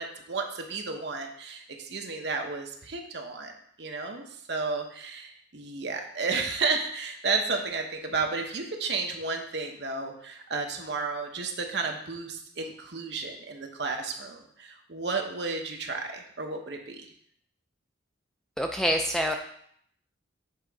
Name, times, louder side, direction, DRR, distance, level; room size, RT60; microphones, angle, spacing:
voice 1, 0.0-3.5 3.8-17.1, right 4 dB, 55° right, 2 dB, 0.9 m, -32 dB
voice 2, 18.6-19.4, equal, ahead, 3 dB, 0.3 m, -26 dB
7.3 x 3.8 x 4.7 m, 0.66 s
head